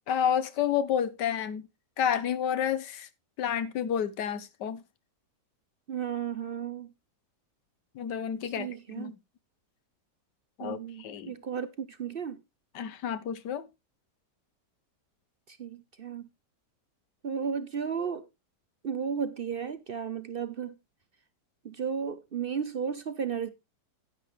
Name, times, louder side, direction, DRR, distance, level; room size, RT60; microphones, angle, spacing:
voice 1, 0.1-1.7 2.0-3.1 3.4-4.8 7.9-9.2 10.6-11.4 12.7-13.7, left 8 dB, 80° left, 1.5 m, -30 dB
voice 2, 5.9-6.9 8.4-9.1 10.6-12.4 15.5-16.3 17.2-18.2 18.8-20.7 21.6-23.5, right 7 dB, 55° right, 0.6 m, -34 dB
10.5 x 10.5 x 3.1 m
omnidirectional pair, 1.8 m